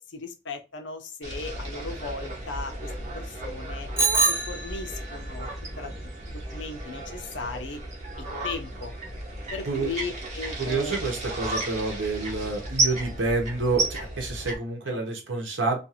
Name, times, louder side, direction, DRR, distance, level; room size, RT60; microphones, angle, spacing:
voice 1, 0.0-3.9 4.3-5.5 5.8-6.0 6.3-7.8 8.2-8.9 9.5-11.0 14.9-15.0, left 3 dB, 70° left, 0.6 m, -37 dB
sound 1, 1.2-14.6, right 2 dB, 40° right, 0.9 m, -33 dB
Bicycle bell, 4.0-5.2, right 3 dB, 15° right, 0.5 m, -25 dB
voice 2, 10.6-15.8, right 3 dB, 75° right, 0.8 m, -28 dB
2.5 x 2.5 x 2.8 m
head